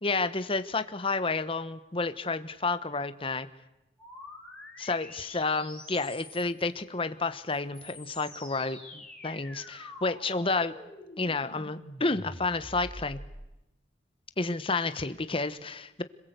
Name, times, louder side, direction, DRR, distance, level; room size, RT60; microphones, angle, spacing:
voice 1, 0.0-3.5 4.8-10.7 11.2-13.2 14.4-16.0, left 3 dB, 30° left, 11 dB, 1.1 m, -30 dB
sound 1, 4.0-6.6 7.5-13.5, left 1 dB, 5° left, 6.8 m, -46 dB
26.5 x 21.5 x 8.1 m, 0.96 s
head